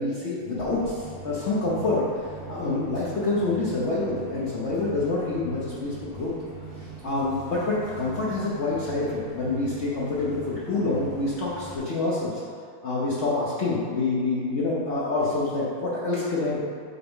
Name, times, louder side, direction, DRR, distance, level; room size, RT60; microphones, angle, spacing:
voice 1, 0.0-2.0 2.5-6.3 6.8-12.4 12.8-16.6, left 3 dB, 75° left, -7 dB, 0.6 m, -27 dB
sound 1, 0.5-11.8, right 3 dB, 85° right, 2.1 m, -42 dB
7.9 x 3.4 x 3.7 m, 2.1 s
omnidirectional pair, 2.4 m